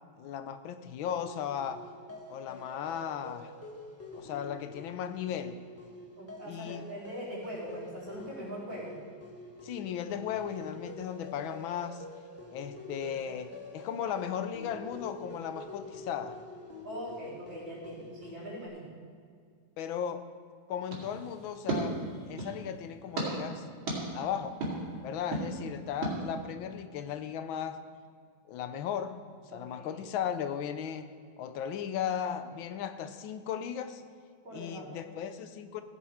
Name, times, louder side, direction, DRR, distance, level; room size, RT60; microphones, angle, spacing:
voice 1, 0.2-1.8 2.3-3.5 4.1-5.6 6.4-6.8 9.6-12.0 12.5-16.4 19.8-20.3 20.7-22.0 22.2-23.6 24.1-24.6 25.0-27.8 28.5-29.2 29.5-31.1 31.4-34.0 34.5-35.8, left 8 dB, 80° left, 10 dB, 1.5 m, -36 dB
sound 1, 1.1-18.7, left 2 dB, 10° left, 0.8 m, -47 dB
voice 2, 6.2-9.0 16.8-18.9 29.5-30.0 34.4-35.0, equal, 65° right, -7 dB, 4.2 m, -42 dB
sound 2, 20.9-22.6 23.2-23.3 23.9-24.0 24.6-24.7 25.3-25.5 26.0-26.1, right 2 dB, 85° right, 3.2 m, -34 dB
15.5 x 7.5 x 5.0 m, 2.1 s
omnidirectional pair, 2.2 m